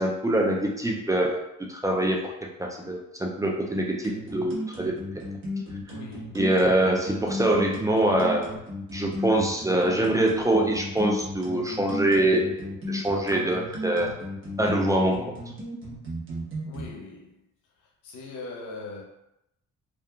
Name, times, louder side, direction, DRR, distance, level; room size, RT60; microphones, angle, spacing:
voice 1, 0.0-1.4 1.7-2.3 2.6-5.0 6.3-8.5 8.9-12.5 12.9-14.1 14.6-15.2, right 1 dB, 10° right, 0.3 m, -24 dB
sound 1, 4.0-16.9, left 1 dB, 40° right, 0.9 m, -35 dB
voice 2, 5.9-6.4 16.6-17.4 18.0-19.0, left 3 dB, 80° left, 0.7 m, -40 dB
2.7 x 2.4 x 2.3 m
cardioid pair, 90°, 30 cm